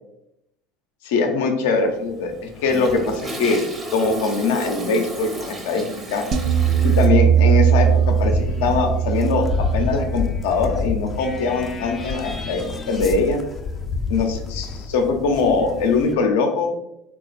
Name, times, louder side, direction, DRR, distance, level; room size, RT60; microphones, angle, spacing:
voice 1, 1.0-3.6 3.9-6.2 6.8-13.4 14.1-16.7, left 4 dB, 75° left, 4 dB, 0.6 m, -22 dB
Toilet flush, 1.8-7.1, right 1 dB, 20° right, 0.9 m, -33 dB
sound 1, 6.3-11.5, right 9 dB, 50° right, 0.5 m, -20 dB
sound 2, 6.6-16.1, left 4 dB, 30° left, 0.5 m, -29 dB
3.2 x 2.4 x 3.9 m, 0.86 s
hypercardioid pair, 80°, 0 cm